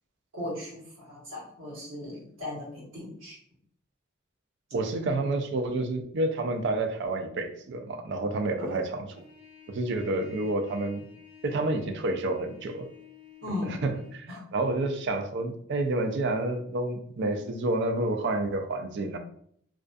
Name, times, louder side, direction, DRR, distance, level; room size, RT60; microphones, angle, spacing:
voice 1, 0.3-3.4 8.6-8.7 13.4-13.8 14.3-14.4, left 1 dB, 80° right, -6 dB, 1.1 m, -37 dB
voice 2, 4.7-8.9 9.2-9.3 9.7-11.0 11.4-12.9 13.8-14.3 14.5-19.2, right 2 dB, 60° right, 6 dB, 0.4 m, -29 dB
Trumpet, 9.1-14.2, left 8 dB, 40° left, 0.6 m, -52 dB
2.4 x 2.2 x 2.4 m, 0.65 s
head